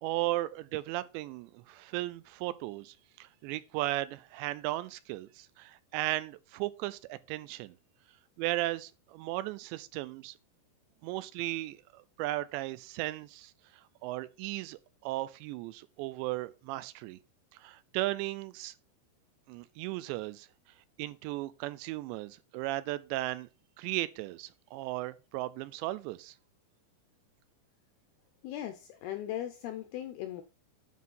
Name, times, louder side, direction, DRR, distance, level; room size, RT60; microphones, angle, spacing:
voice 1, 0.0-7.8 8.4-10.3 11.0-17.2 17.5-18.7 19.5-20.5 21.0-23.5 23.8-26.4, right 17 dB, 85° right, 2.7 m, -36 dB
voice 2, 28.4-30.4, left 12 dB, 80° left, 2.3 m, -38 dB
9.4 x 4.0 x 5.5 m
omnidirectional pair, 5.2 m